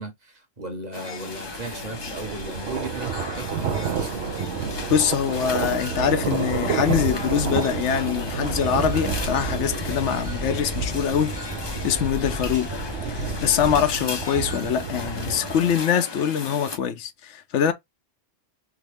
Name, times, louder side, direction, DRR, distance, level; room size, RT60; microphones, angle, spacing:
voice 1, 0.0-4.5, right 2 dB, 40° right, 1.1 m, -36 dB
sound 1, 0.9-16.8, left 4 dB, 40° left, 0.3 m, -36 dB
sound 2, 1.3-15.8, right 6 dB, 70° right, 0.8 m, -30 dB
voice 2, 4.9-11.3 11.8-12.7 13.1-17.7, left 8 dB, 85° left, 1.0 m, -24 dB
sound 3, 8.5-13.8, left 1 dB, 10° right, 0.8 m, -35 dB
3.6 x 2.1 x 3.3 m
omnidirectional pair, 1.2 m